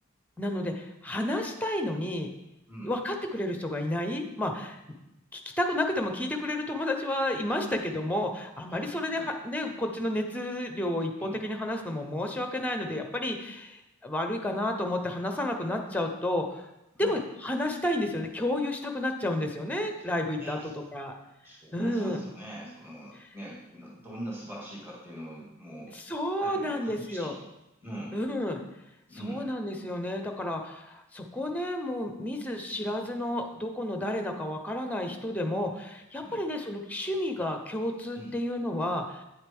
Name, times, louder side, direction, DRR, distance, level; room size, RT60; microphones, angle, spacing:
voice 1, 0.4-2.3 2.8-4.8 5.3-16.7 17.0-21.1 21.7-22.2 25.9-27.3 28.1-28.6 29.2-39.2, left 1 dB, 5° left, 4 dB, 0.8 m, -31 dB
voice 2, 8.7-9.3 11.2-11.4 17.0-17.2 20.1-20.7 21.4-25.9 26.4-27.5 27.8-28.2 29.1-29.5 36.2-36.4 38.1-38.4, right 1 dB, 10° right, -5 dB, 2.0 m, -42 dB
8.8 x 7.9 x 3.6 m, 0.91 s
head